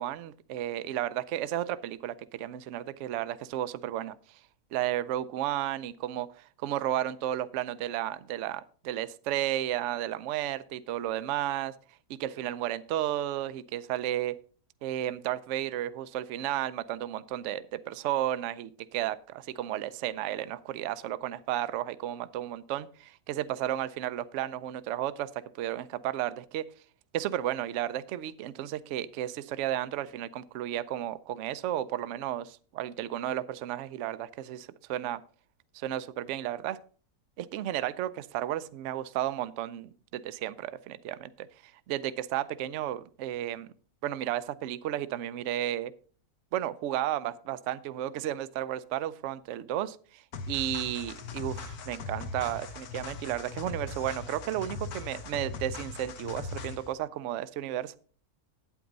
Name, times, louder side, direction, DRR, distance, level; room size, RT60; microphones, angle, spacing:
voice 1, 0.0-4.1 4.7-11.7 12.2-14.4 14.8-25.3 25.5-26.7 27.1-35.2 35.7-36.8 37.4-43.7 44.0-45.9 46.5-58.0, right 12 dB, 65° right, 15 dB, 0.8 m, -33 dB
sound 1, 50.3-56.9, left 4 dB, 80° left, 1.5 m, -39 dB
9.0 x 8.5 x 3.9 m, 0.42 s
omnidirectional pair, 1.6 m